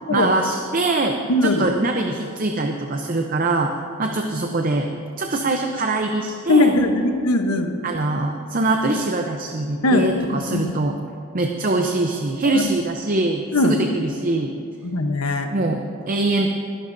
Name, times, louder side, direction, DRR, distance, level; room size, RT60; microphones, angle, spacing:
voice 1, 0.1-4.9 5.2-6.7 7.8-11.0 11.3-14.5 15.5-16.5, right 2 dB, 40° right, 3 dB, 0.6 m, -23 dB
voice 2, 1.3-1.6 6.5-7.7 9.8-10.0 10.3-10.7 12.4-12.6 13.5-13.8 14.8-15.5, left 2 dB, 85° left, 5 dB, 0.9 m, -19 dB
21.0 x 11.0 x 2.6 m, 2.5 s
head